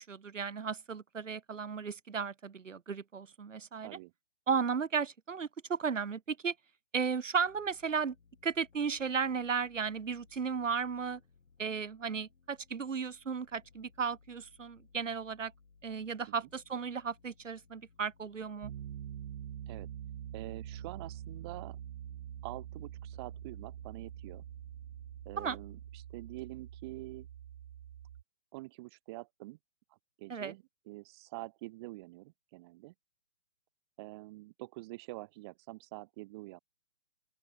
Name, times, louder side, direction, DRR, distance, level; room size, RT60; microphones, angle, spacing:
voice 1, 0.0-4.0 4.5-6.5 6.9-8.1 8.4-11.2 11.6-15.5 15.8-18.7 25.4-25.6 30.3-30.5, right 6 dB, 90° right, 1.1 m, -35 dB
voice 2, 3.8-4.1 19.7-19.9 20.3-21.8 22.4-24.4 25.2-27.3 28.5-29.6 29.9-32.9 34.0-36.6, right 21 dB, 20° right, 0.8 m, -46 dB
sound 1, 7.4-25.9, left 4 dB, 80° left, 6.0 m, -64 dB
Piano, 18.6-28.2, right 10 dB, 55° right, 0.5 m, -45 dB
open air
hypercardioid pair, 140°, 37 cm